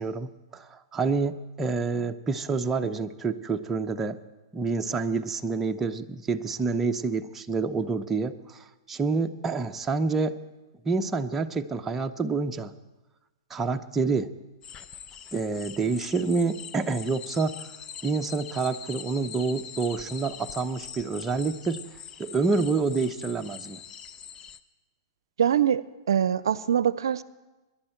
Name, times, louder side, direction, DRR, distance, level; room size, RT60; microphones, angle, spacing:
voice 1, 0.0-4.2 4.5-10.4 10.8-12.7 13.5-14.3 15.3-17.7 18.0-21.8 22.2-23.8, right 4 dB, 15° right, 6 dB, 0.7 m, -28 dB
sound 1, 14.6-24.6, left 8 dB, 25° left, 0.6 m, -43 dB
voice 2, 25.4-27.2, right 9 dB, 80° right, 18 dB, 0.5 m, -24 dB
24.5 x 11.0 x 4.4 m, 1.1 s
hypercardioid pair, 130°, 2 cm